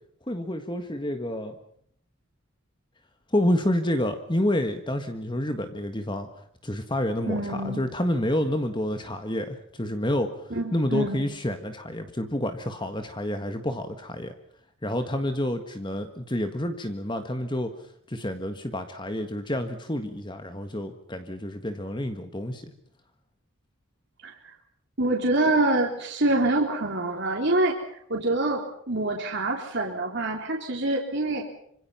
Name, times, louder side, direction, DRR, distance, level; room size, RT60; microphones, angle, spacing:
voice 1, 0.3-1.6 3.3-6.3 6.6-14.3 14.8-17.7 18.1-22.7, left 1 dB, 20° left, 7 dB, 1.6 m, -29 dB
voice 2, 7.3-7.8 10.5-11.2 24.2-24.5 25.0-28.6 28.9-31.4, right 2 dB, 50° right, 0 dB, 3.7 m, -26 dB
26.0 x 25.5 x 5.7 m, 0.67 s
head